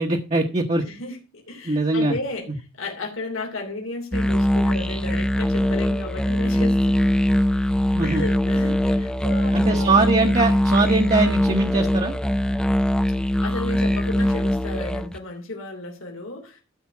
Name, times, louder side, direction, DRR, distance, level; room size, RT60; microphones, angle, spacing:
voice 1, 0.0-0.8 1.6-2.2 2.5-2.6 7.9-8.2 9.5-12.1, right 3 dB, 35° right, 2 dB, 1.1 m, -21 dB
voice 2, 0.8-2.5 2.8-7.2 8.0-10.0 13.4-16.6, left 2 dB, 90° left, 1 dB, 3.0 m, -34 dB
sound 1, 4.1-15.2, equal, 5° left, 0.5 m, -21 dB
13.0 x 5.1 x 5.9 m, 0.31 s
head